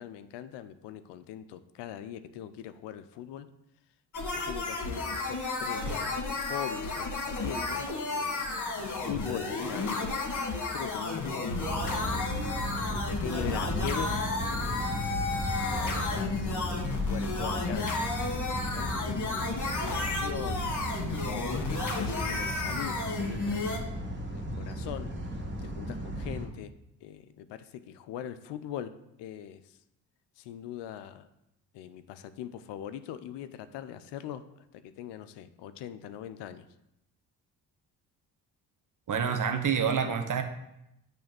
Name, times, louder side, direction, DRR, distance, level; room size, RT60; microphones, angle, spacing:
voice 1, 0.0-3.5 4.2-6.0 6.3-10.1 10.7-11.5 11.9-12.3 12.9-14.1 14.5-14.9 15.7-23.7 24.3-25.1 25.6-26.7 27.0-28.9 29.2-29.6 30.4-31.3 31.7-34.4 34.7-36.6, left 10 dB, 65° left, 12 dB, 0.7 m, -41 dB
sound 1, 4.1-23.8, left 3 dB, 40° left, 2.0 m, -32 dB
sound 2, 11.6-26.5, right 1 dB, 25° right, 1.8 m, -35 dB
voice 2, 39.1-40.4, right 7 dB, 40° right, 5 dB, 1.2 m, -27 dB
8.5 x 3.5 x 6.0 m, 0.84 s
hypercardioid pair, 45°, 46 cm